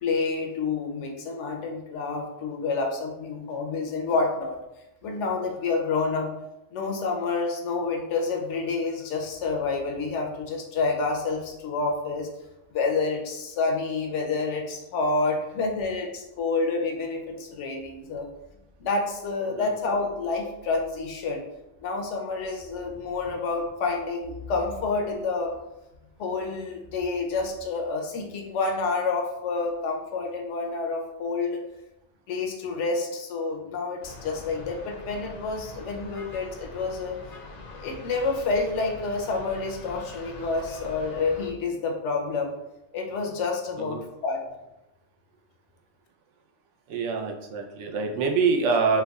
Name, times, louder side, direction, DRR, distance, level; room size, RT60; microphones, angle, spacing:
voice 1, 0.0-4.6 5.0-6.3 6.7-12.3 12.7-18.3 18.8-21.4 21.8-25.5 26.2-31.6 32.3-37.2 37.8-42.5 42.9-44.4, left 3 dB, 80° left, 2 dB, 0.9 m, -28 dB
sound 1, 34.0-41.5, left 2 dB, 55° left, 0.7 m, -43 dB
voice 2, 46.9-49.0, right 5 dB, 85° right, 2 dB, 0.9 m, -25 dB
4.5 x 2.2 x 2.3 m, 0.91 s
omnidirectional pair, 1.2 m